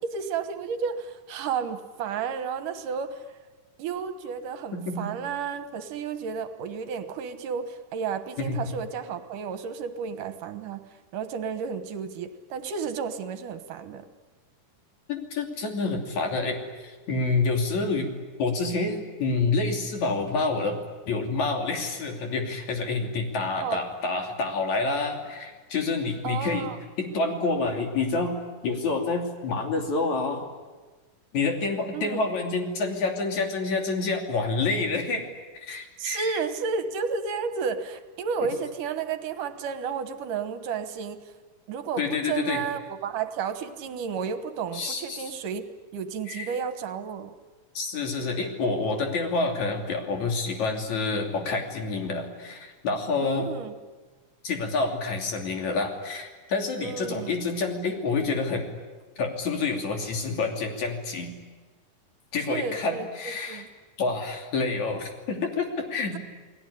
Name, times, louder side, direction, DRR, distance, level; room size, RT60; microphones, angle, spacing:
voice 1, 0.0-3.4 3.8-10.8 11.1-14.1 23.6-23.8 26.2-26.8 31.9-32.2 36.0-41.2 41.7-45.7 45.9-47.3 53.2-53.7 56.8-57.3 62.5-63.1 63.5-63.7, right 6 dB, 75° right, 9 dB, 2.8 m, -32 dB
voice 2, 4.7-5.1 8.4-8.6 15.1-18.1 18.4-20.8 21.1-26.7 27.0-28.4 28.6-30.5 31.3-35.3 35.5-36.4 42.0-42.6 44.7-45.2 46.3-46.5 47.7-53.5 54.4-58.6 59.2-61.3 62.3-63.7 64.0-66.2, left 3 dB, 60° left, 3 dB, 4.1 m, -28 dB
29.5 x 19.5 x 10.0 m, 1.3 s
omnidirectional pair, 3.8 m